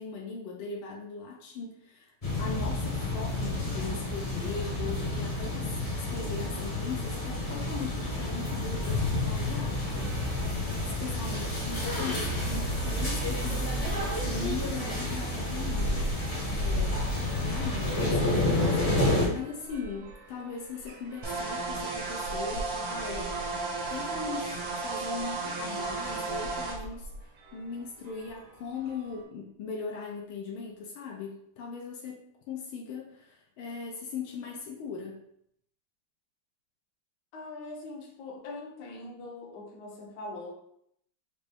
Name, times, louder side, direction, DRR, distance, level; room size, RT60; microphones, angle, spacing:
voice 1, 0.0-2.1 2.4-10.1 10.8-16.2 16.6-23.5 23.9-35.2, left 5 dB, 75° left, -1 dB, 1.5 m, -39 dB
sound 1, 2.2-19.3, left 1 dB, 30° left, 0.6 m, -30 dB
sound 2, 9.8-29.2, equal, 70° right, 1.5 m, -41 dB
sound 3, 21.2-26.8, right 3 dB, 45° right, 0.8 m, -34 dB
voice 2, 37.3-40.5, left 2 dB, 60° left, 0 dB, 1.3 m, -42 dB
5.2 x 2.6 x 3.4 m, 0.72 s
omnidirectional pair, 2.3 m